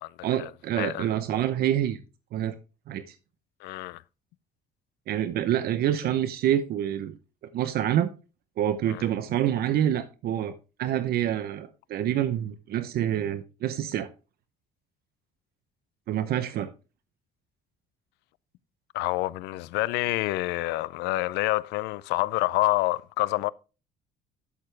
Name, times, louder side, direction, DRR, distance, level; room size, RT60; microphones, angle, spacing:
voice 1, 0.2-2.0 2.3-2.5 2.9-3.2 5.1-7.2 7.5-8.1 8.6-10.5 10.8-14.1 16.1-16.7, right 11 dB, 65° right, 0.8 m, -27 dB
voice 2, 3.6-4.0 8.9-9.0 18.9-23.5, left 19 dB, 90° left, 0.5 m, -27 dB
12.0 x 6.8 x 3.3 m
cardioid pair, 110°, 17 cm